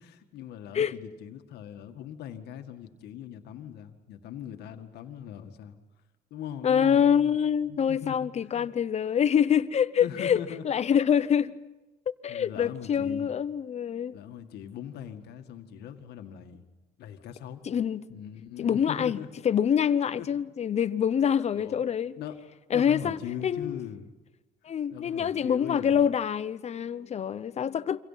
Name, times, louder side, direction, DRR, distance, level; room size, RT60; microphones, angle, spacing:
voice 1, 0.0-5.8 6.3-8.7 10.0-10.7 12.3-13.3 14.1-16.6 17.0-17.6 18.1-19.3 20.2-20.3 21.5-21.8 22.2-22.4 22.7-24.1 24.9-26.1, left 9 dB, 75° left, 1.9 m, -40 dB
voice 2, 6.6-10.4 10.6-11.6 12.2-14.2 17.6-18.1 18.6-19.2 19.4-22.2 22.7-23.8 24.6-28.0, left 8 dB, 40° left, 0.8 m, -25 dB
28.5 x 25.5 x 5.8 m
cardioid pair, 110°, 17 cm